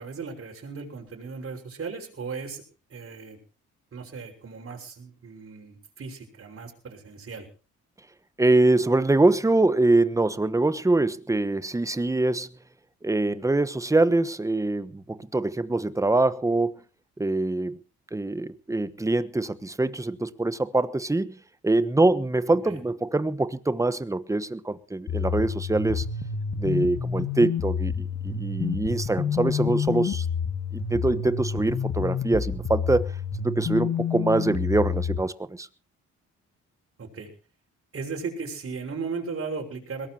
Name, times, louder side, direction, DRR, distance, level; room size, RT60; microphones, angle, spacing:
voice 1, 0.0-2.6 2.9-3.4 3.9-7.5 22.6-22.8 37.0-37.3 37.9-40.1, right 4 dB, 45° right, 5.9 m, -36 dB
voice 2, 8.4-12.5 13.0-16.8 17.2-17.8 18.1-21.4 21.6-26.0 26.6-30.3 30.7-33.1 33.4-35.7, right 2 dB, 10° right, 1.2 m, -24 dB
sound 1, 25.1-35.2, left 6 dB, 60° left, 2.4 m, -29 dB
22.0 x 18.0 x 2.9 m
cardioid pair, 90°, 30 cm